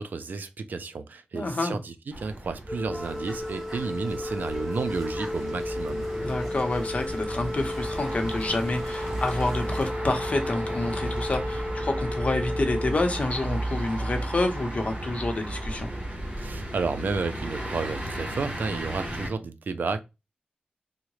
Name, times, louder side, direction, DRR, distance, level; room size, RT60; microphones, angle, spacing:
voice 1, 0.0-6.1 16.4-20.0, right 4 dB, 80° right, 0.4 m, -32 dB
voice 2, 1.3-1.8 6.2-15.9, left 2 dB, 45° left, 0.7 m, -28 dB
sound 1, 2.1-19.3, right 1 dB, 40° right, 1.1 m, -34 dB
Organ, 2.7-13.8, left 1 dB, 15° left, 0.4 m, -34 dB
sound 2, 2.9-9.9, equal, 5° right, 0.8 m, -45 dB
3.7 x 2.1 x 3.1 m
wide cardioid pair, 95°, 3 cm